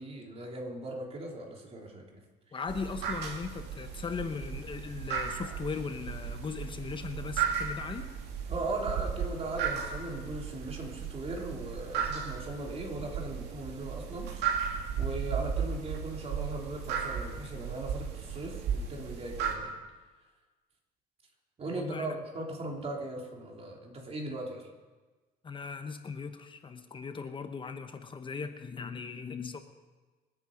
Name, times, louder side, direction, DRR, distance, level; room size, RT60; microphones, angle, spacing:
voice 1, 0.0-2.0 8.5-14.7 15.0-19.8 21.6-24.7, right 2 dB, 35° right, 0 dB, 3.4 m, -38 dB
voice 2, 2.5-8.1 21.7-22.2 25.4-29.6, left 5 dB, 30° left, 8 dB, 1.1 m, -38 dB
sound 1, 2.7-19.5, right 7 dB, 85° right, 2.3 m, -35 dB
26.5 x 9.0 x 5.2 m, 1.3 s
cardioid pair, 110°, 17 cm